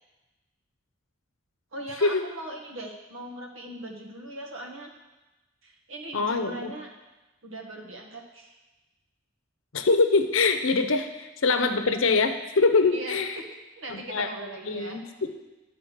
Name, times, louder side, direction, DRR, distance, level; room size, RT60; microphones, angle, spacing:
voice 1, 1.7-4.9 5.6-6.9 7.4-8.5 12.9-13.4 13.8-15.0, right 1 dB, 80° right, 0 dB, 1.5 m, -39 dB
voice 2, 6.1-6.7 9.7-11.1 11.4-13.4 13.9-14.3 14.7-15.0, left 3 dB, 80° left, 7 dB, 0.7 m, -23 dB
10.5 x 4.3 x 6.3 m, 1.1 s
head